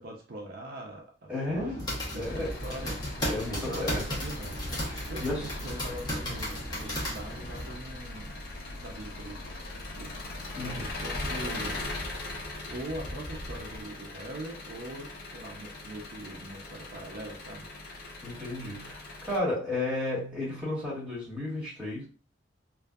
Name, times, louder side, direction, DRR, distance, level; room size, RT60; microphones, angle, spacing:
voice 1, 0.0-1.9 2.1-3.0 3.6-4.6 5.1-8.5 8.8-9.4 9.8-10.2 10.6-11.9 12.7-17.7, right 1 dB, 55° right, 0 dB, 0.5 m, -42 dB
voice 2, 1.3-1.8 2.2-2.5 3.3-4.0 4.8-5.5 10.6-10.9 18.2-22.1, left 2 dB, 5° right, -8 dB, 1.3 m, -33 dB
sound 1, 1.5-7.7, equal, 20° left, 0.8 m, -35 dB
Engine, 2.3-19.4, left 2 dB, 55° left, 0.5 m, -40 dB
2.6 x 2.2 x 2.2 m, 0.37 s
head